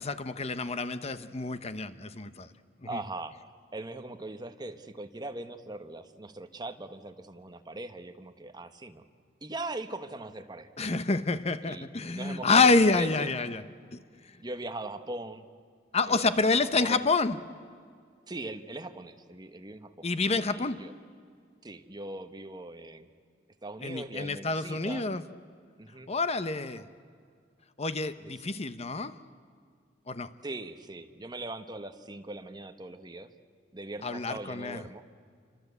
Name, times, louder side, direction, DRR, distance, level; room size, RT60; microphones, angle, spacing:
voice 1, 0.0-2.5 2.8-3.0 10.8-13.6 13.9-14.0 15.9-17.4 20.0-20.9 23.8-25.2 26.1-26.8 27.8-29.2 30.1-30.3 34.0-34.8, left 3 dB, 35° left, 12 dB, 0.9 m, -27 dB
voice 2, 2.9-3.4 3.7-9.0 9.4-10.7 11.6-11.9 12.1-13.3 14.4-15.4 16.1-17.0 18.3-20.1 20.3-20.9 21.6-23.1 23.6-25.1 25.8-26.1 28.2-28.5 30.4-33.3 33.7-35.0, right 2 dB, 25° right, 8 dB, 1.3 m, -40 dB
28.5 x 25.5 x 8.2 m, 2.1 s
head